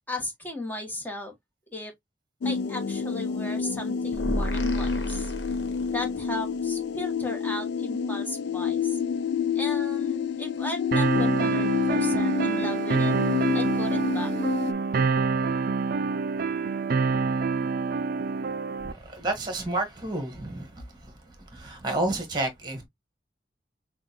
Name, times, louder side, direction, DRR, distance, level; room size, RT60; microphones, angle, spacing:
voice 1, 0.1-1.3 1.7-1.9 2.4-5.3 5.9-9.0 9.5-13.1 13.5-14.3, left 2 dB, 10° left, 1.3 m, -36 dB
sound 1, 2.4-14.7, left 7 dB, 65° left, 0.3 m, -29 dB
sound 2, 4.1-6.2, equal, 80° left, 1.1 m, -31 dB
sound 3, 10.9-18.9, right 4 dB, 55° right, 0.3 m, -26 dB
voice 2, 18.8-22.9, right 2 dB, 25° right, 1.4 m, -31 dB
6.2 x 2.3 x 2.9 m
head